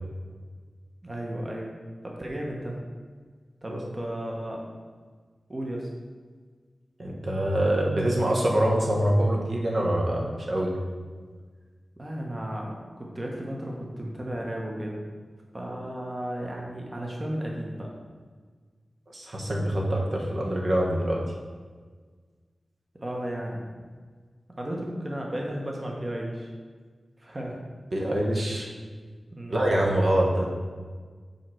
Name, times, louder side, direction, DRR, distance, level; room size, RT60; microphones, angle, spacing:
voice 1, 1.0-1.7 2.0-2.8 3.6-4.7 5.5-5.9 12.0-15.0 15.5-17.9 23.0-23.7 24.6-26.5 27.2-27.6 29.3-29.6, right 1 dB, 30° right, -1 dB, 1.2 m, -34 dB
voice 2, 7.0-10.7 19.1-21.2 27.9-28.7 29.5-30.5, right 1 dB, 55° right, -2 dB, 1.1 m, -25 dB
5.6 x 4.4 x 6.2 m, 1.5 s
wide cardioid pair, 110°, 0 cm